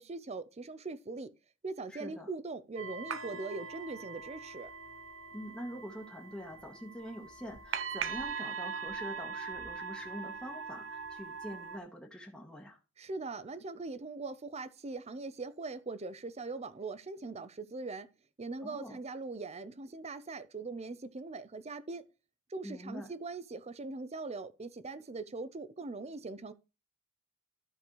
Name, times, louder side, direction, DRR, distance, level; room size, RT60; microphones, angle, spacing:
voice 1, 0.0-1.3 1.6-4.7 13.0-18.1 18.4-22.0 22.5-26.5, right 3 dB, 30° right, 0.6 m, -41 dB
voice 2, 1.9-2.3 5.3-12.8 18.6-19.0 22.6-23.1, equal, 5° left, 1.1 m, -45 dB
sound 1, 2.8-11.8, right 5 dB, 75° right, 0.8 m, -41 dB
13.0 x 5.1 x 3.0 m
head